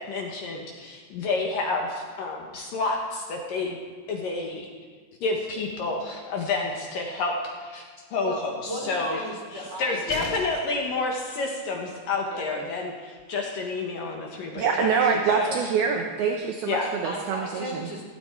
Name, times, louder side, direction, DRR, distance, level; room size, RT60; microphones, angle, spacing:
voice 1, 0.0-3.8 4.1-4.7 5.2-7.8 8.1-8.5 8.8-9.2 9.5-14.9 15.3-15.5 16.7-16.9, left 3 dB, 65° left, 0 dB, 2.3 m, -29 dB
voice 2, 8.2-10.3 12.3-12.5 15.9-16.0 17.0-18.0, equal, 20° right, -2 dB, 1.9 m, -35 dB
sound 1, 10.1-10.8 12.8-12.9 13.2-13.3, left 9 dB, 85° left, 3.3 m, -38 dB
voice 3, 14.6-17.8, right 6 dB, 75° right, 2 dB, 2.3 m, -25 dB
17.0 x 15.0 x 4.5 m, 1.5 s
omnidirectional pair, 5.6 m